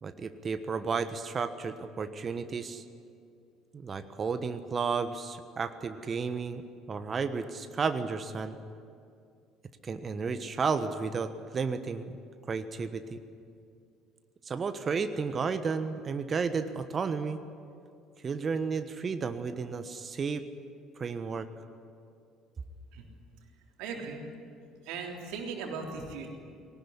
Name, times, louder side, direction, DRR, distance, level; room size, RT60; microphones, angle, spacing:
voice 1, 0.0-2.8 3.7-6.6 6.9-8.6 9.8-12.2 12.5-13.2 14.4-17.4 18.2-20.4 21.0-21.5, right 5 dB, 35° right, 10 dB, 1.2 m, -32 dB
voice 2, 23.8-24.2 24.8-26.3, right 5 dB, 65° right, 1 dB, 3.4 m, -38 dB
20.0 x 18.5 x 10.0 m, 2.4 s
figure-of-eight pair, 55°, 0 cm